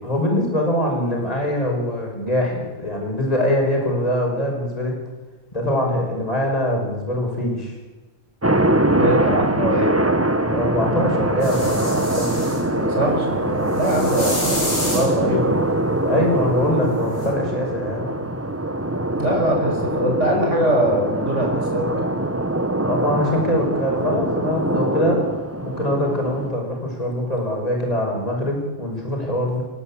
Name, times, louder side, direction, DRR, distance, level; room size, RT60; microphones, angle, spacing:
voice 1, 0.0-5.0 5.5-7.8 10.5-12.4 16.0-18.1 22.8-25.2 25.6-29.6, left 1 dB, 25° left, -1 dB, 5.7 m, -23 dB
sound 1, 8.4-26.5, right 1 dB, 10° right, 1.0 m, -23 dB
voice 2, 9.0-9.9 12.7-15.6 19.2-22.0, equal, 55° right, 0 dB, 5.9 m, -22 dB
sound 2, 11.4-12.6 13.7-15.1 17.2-17.3, left 1 dB, 75° left, 8.3 m, -29 dB
30.0 x 11.0 x 8.5 m, 1.2 s
omnidirectional pair, 1.5 m